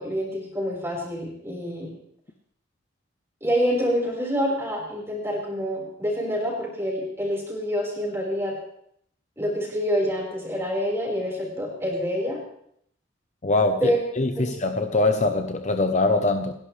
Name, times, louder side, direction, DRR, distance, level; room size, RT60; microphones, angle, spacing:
voice 1, 0.0-1.9 3.4-8.6 9.4-12.4 13.8-14.0 14.4-14.5, equal, 15° right, -3 dB, 4.9 m, -27 dB
voice 2, 13.4-16.5, left 2 dB, 40° left, 6 dB, 0.8 m, -23 dB
29.0 x 11.5 x 3.4 m, 0.69 s
head